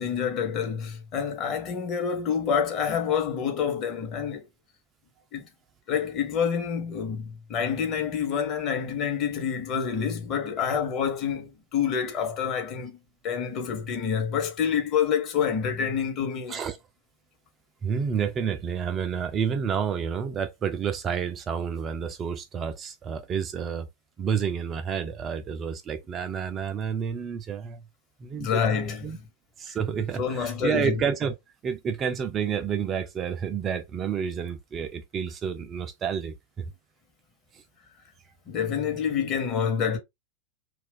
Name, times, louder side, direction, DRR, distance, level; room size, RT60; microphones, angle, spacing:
voice 1, 0.0-4.4 5.3-5.5 5.9-13.0 13.2-16.6 28.4-29.3 30.2-31.0 38.5-40.0, left 7 dB, 35° left, 0.9 m, -27 dB
voice 2, 17.8-23.9 24.2-27.8 28.2-29.2 29.6-31.4 31.6-36.7 37.5-37.6, right 7 dB, 25° right, 0.4 m, -30 dB
2.4 x 2.3 x 3.7 m
figure-of-eight pair, 90°, 0 cm